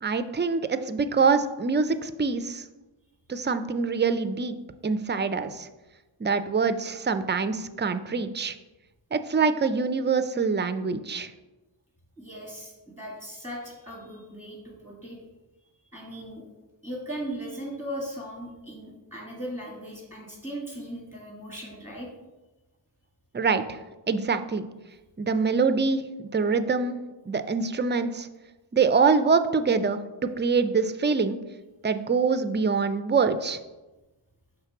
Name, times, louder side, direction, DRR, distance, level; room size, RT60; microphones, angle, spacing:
voice 1, 0.0-2.6 3.3-4.5 4.8-5.7 6.2-8.5 9.1-11.3 23.3-23.8 24.1-24.6 25.2-27.0 27.3-28.3 28.7-31.4 31.8-33.6, right 5 dB, 25° right, 10 dB, 0.4 m, -25 dB
voice 2, 12.2-15.2 15.9-16.4 16.8-22.1, equal, 15° left, -3 dB, 1.9 m, -38 dB
5.8 x 3.3 x 5.8 m, 1.1 s
wide cardioid pair, 45°, 49 cm